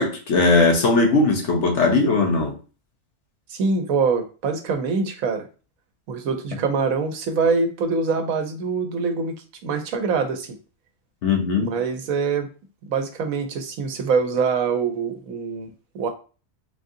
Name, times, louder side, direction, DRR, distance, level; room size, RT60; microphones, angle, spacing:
voice 1, 0.0-2.5 11.2-11.7, left 3 dB, 60° left, 1.1 m, -19 dB
voice 2, 3.5-5.5 6.1-9.4 9.6-10.5 11.6-12.5 12.9-16.1, right 5 dB, 85° right, 1.2 m, -24 dB
3.7 x 3.7 x 2.7 m
omnidirectional pair, 1.4 m